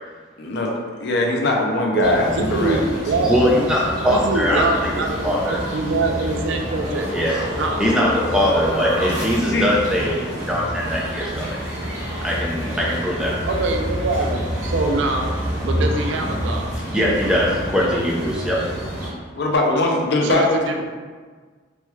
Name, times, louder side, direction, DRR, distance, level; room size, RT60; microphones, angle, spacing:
voice 1, 0.4-2.8 9.5-9.7 19.4-20.8, left 2 dB, 60° left, 1 dB, 0.5 m, -21 dB
voice 2, 1.9-3.5 4.1-7.1 7.5-7.8 13.5-16.7 20.2-20.8, right 3 dB, 65° right, 3 dB, 0.4 m, -24 dB
sound 1, 2.0-19.1, equal, 20° right, 1.2 m, -28 dB
voice 3, 3.3-4.9 5.2-5.6 7.1-7.5 7.8-11.6 12.2-13.5 16.9-18.6, equal, 5° right, -5 dB, 0.5 m, -21 dB
sound 2, 6.2-9.6, left 1 dB, 25° left, 0.8 m, -32 dB
3.1 x 2.2 x 3.1 m, 1.5 s
head